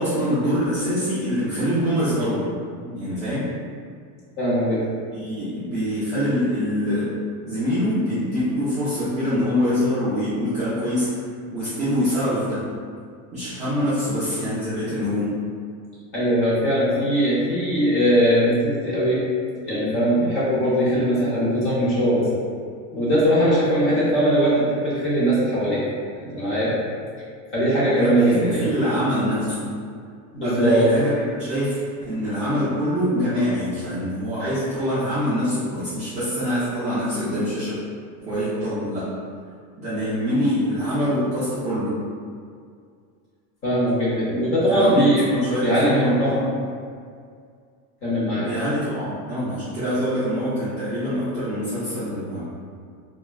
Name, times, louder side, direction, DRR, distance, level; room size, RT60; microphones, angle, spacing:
voice 1, 0.0-2.4 2.8-3.5 5.1-7.1 7.5-11.1 11.5-12.6 13.3-15.3 27.9-29.7 30.4-31.1 31.4-37.8 38.2-39.1 39.8-42.0 44.4-46.5 48.3-52.5, equal, 20° right, -14 dB, 0.4 m, -24 dB
voice 2, 4.4-4.8 16.1-19.2 19.7-22.3 22.9-25.8 26.2-26.8 27.5-28.6 30.3-30.9 43.6-45.3 45.6-46.5 48.0-48.4, equal, 30° left, -8 dB, 0.8 m, -20 dB
3.1 x 2.3 x 2.3 m, 2.1 s
supercardioid pair, 155°, 42 cm